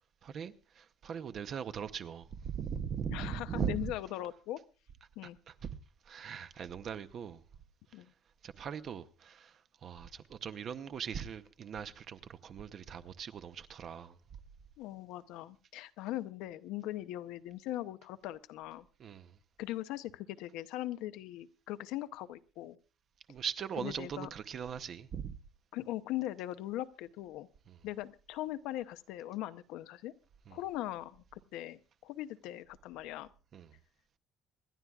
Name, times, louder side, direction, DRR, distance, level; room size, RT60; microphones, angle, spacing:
voice 1, 0.2-3.9 5.5-5.8 6.1-7.4 8.4-14.2 19.0-19.3 23.3-25.3 27.7-27.8 30.5-30.6 33.5-33.7, right 7 dB, 35° right, 0.7 m, -40 dB
voice 2, 3.1-4.6 5.2-5.4 7.9-8.1 14.8-18.8 19.6-22.8 23.8-24.3 25.7-27.5 27.8-30.1 30.5-33.3, left 14 dB, 80° left, 0.7 m, -40 dB
26.5 x 11.5 x 2.4 m
cardioid pair, 170°, 0 cm